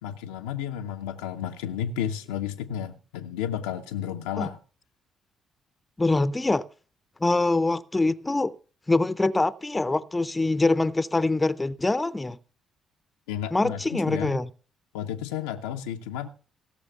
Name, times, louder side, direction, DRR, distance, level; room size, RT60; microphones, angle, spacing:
voice 1, 0.0-4.6 13.3-14.4 14.9-16.3, left 9 dB, 85° left, 0.6 m, -32 dB
voice 2, 6.0-6.6 7.2-8.5 8.9-12.4 13.5-14.5, left 2 dB, 20° left, 0.6 m, -24 dB
17.0 x 6.4 x 6.7 m
hypercardioid pair, 50°, 0 cm